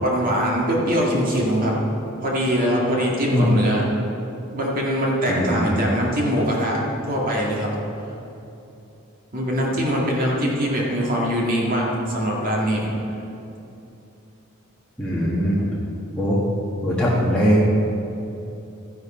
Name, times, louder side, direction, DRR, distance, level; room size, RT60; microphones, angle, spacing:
voice 1, 0.0-1.7 2.2-3.8 4.5-6.8 7.1-7.7 9.3-12.9, equal, 40° right, -3 dB, 2.1 m, -22 dB
voice 2, 5.3-5.8 15.0-15.6 16.2-16.4 16.8-17.6, equal, 5° left, -8 dB, 1.5 m, -20 dB
13.0 x 11.0 x 4.4 m, 2.9 s
head